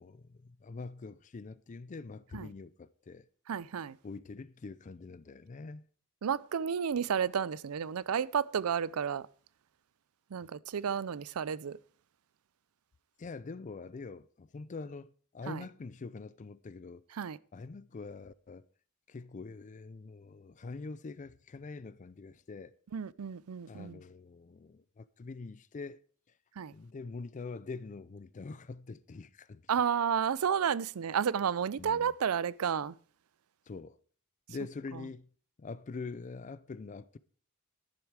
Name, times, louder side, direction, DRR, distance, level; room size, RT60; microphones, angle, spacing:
voice 1, 0.0-3.3 4.0-5.8 13.2-17.0 17.5-18.7 19.1-22.7 23.7-26.0 26.7-29.6 31.8-32.1 33.7-34.0 34.5-35.3 35.6-37.2, left 4 dB, 35° left, 0.4 m, -44 dB
voice 2, 3.5-4.0 6.2-9.3 10.3-11.8 15.5-15.6 17.2-17.4 22.9-24.0 26.6-26.7 29.7-32.9, right 7 dB, 80° right, 0.5 m, -31 dB
10.5 x 10.5 x 4.7 m
head